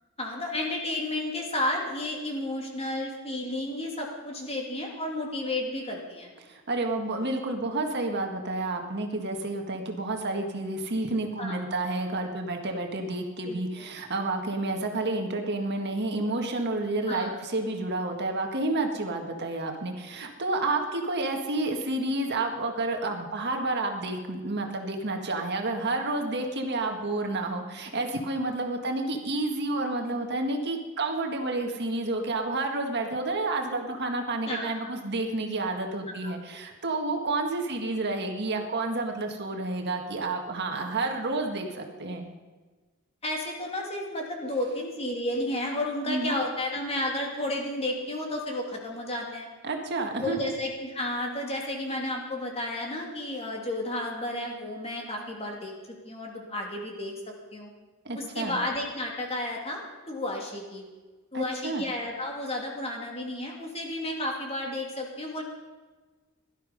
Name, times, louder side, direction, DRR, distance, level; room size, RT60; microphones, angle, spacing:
voice 1, 0.2-6.3 11.4-11.6 13.5-13.6 17.1-17.3 34.4-34.9 36.1-36.3 43.2-49.5 50.2-55.7 56.0-57.1 57.5-57.7 58.1-60.8 61.3-65.4, left 1 dB, 30° left, 0 dB, 2.8 m, -32 dB
voice 2, 6.4-42.2 46.1-46.4 49.6-50.5 58.1-58.6 61.3-61.8, right 2 dB, 55° right, 3 dB, 1.8 m, -30 dB
17.0 x 12.0 x 5.4 m, 1.3 s
head